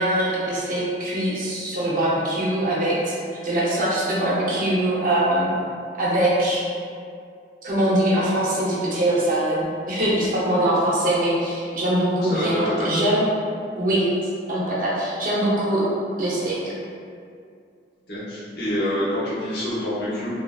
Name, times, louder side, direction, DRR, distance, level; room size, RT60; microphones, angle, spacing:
voice 1, 0.0-3.2 3.4-5.6 6.0-6.6 7.6-13.2 13.8-14.0 14.5-15.8 16.2-16.7, right 1 dB, 50° right, -7 dB, 0.6 m, -22 dB
voice 2, 12.2-12.9 18.1-20.3, left 1 dB, 65° left, -10 dB, 0.9 m, -26 dB
2.7 x 2.5 x 2.3 m, 2.3 s
head